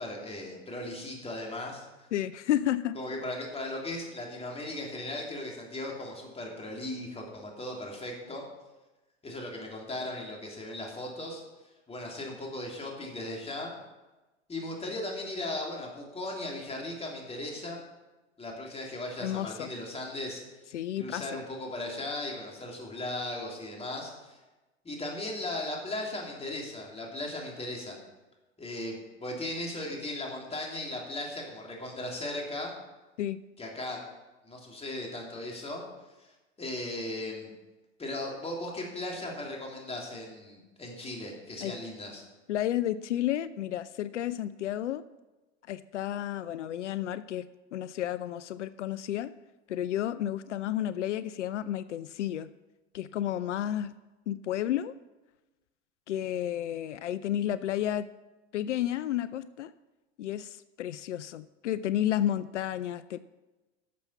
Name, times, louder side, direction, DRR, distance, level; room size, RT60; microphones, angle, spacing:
voice 1, 0.0-1.9 2.9-8.4 9.2-11.4 11.9-13.7 14.5-17.8 18.4-20.4 21.0-24.4 24.8-28.0 28.6-32.7 33.6-34.0 34.4-35.8 36.6-37.5 38.0-42.2, left 1 dB, 15° left, -1 dB, 3.1 m, -37 dB
voice 2, 2.1-3.0 19.2-19.7 20.7-21.3 33.2-33.4 41.6-41.7 42.5-45.0 45.7-47.5 47.7-49.3 49.7-52.5 52.9-53.9 54.3-54.9 56.1-58.1 58.5-59.7 60.2-63.2, left 12 dB, 85° left, 15 dB, 0.5 m, -31 dB
11.0 x 7.2 x 5.7 m, 1.1 s
hypercardioid pair, 90°, 35 cm